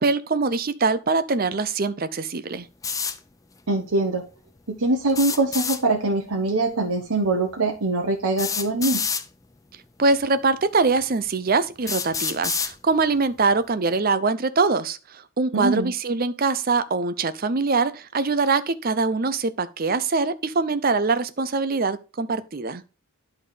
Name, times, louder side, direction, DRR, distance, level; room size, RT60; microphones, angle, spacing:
voice 1, 0.0-2.7 10.0-22.8, right 4 dB, 40° right, 0.6 m, -23 dB
sound 1, 2.8-3.2 5.1-5.8 7.2-7.3 8.4-9.2 10.2-10.3 11.0-11.1 11.9-12.7, left 6 dB, 15° left, 0.4 m, -27 dB
voice 2, 3.7-4.2 4.7-9.0 15.5-15.9, right 2 dB, 85° right, 1.2 m, -23 dB
11.0 x 3.7 x 4.9 m
head